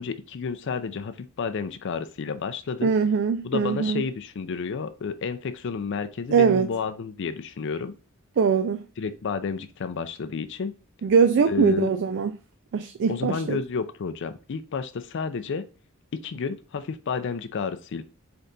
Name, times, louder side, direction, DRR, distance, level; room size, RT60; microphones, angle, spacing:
voice 1, 0.0-2.9 3.4-8.0 9.0-10.7 11.4-11.9 13.1-15.6 16.1-18.0, left 5 dB, 55° left, 0.4 m, -31 dB
voice 2, 2.8-4.0 6.3-6.7 8.4-8.8 11.0-12.3 12.7-13.6, right 6 dB, 55° right, 0.3 m, -22 dB
4.0 x 3.4 x 3.8 m
head